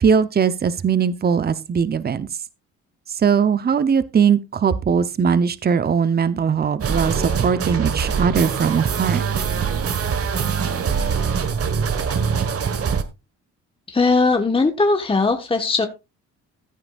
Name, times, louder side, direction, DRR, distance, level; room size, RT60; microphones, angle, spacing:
voice 1, 0.0-2.3 3.2-9.2, right 6 dB, 30° right, 0.8 m, -20 dB
sound 1, 6.8-13.0, right 6 dB, 50° right, 1.6 m, -23 dB
voice 2, 13.9-15.9, left 3 dB, 20° left, 1.4 m, -19 dB
15.0 x 9.6 x 2.5 m
cardioid pair, 90°, 30 cm